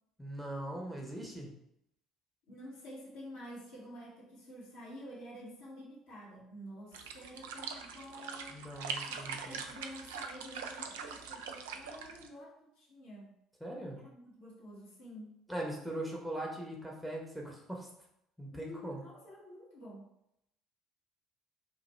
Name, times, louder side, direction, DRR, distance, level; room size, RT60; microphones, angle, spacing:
voice 1, 0.2-1.5 8.5-9.6 13.6-14.0 15.5-17.9 18.4-19.0, right 1 dB, 5° right, -2 dB, 0.8 m, -40 dB
voice 2, 2.5-13.3 13.9-15.3 18.5-20.1, equal, 70° left, -8 dB, 1.3 m, -49 dB
sound 1, 6.9-12.3, right 5 dB, 70° right, 0.3 m, -42 dB
3.0 x 2.5 x 4.3 m, 0.78 s
figure-of-eight pair, 55°, 0 cm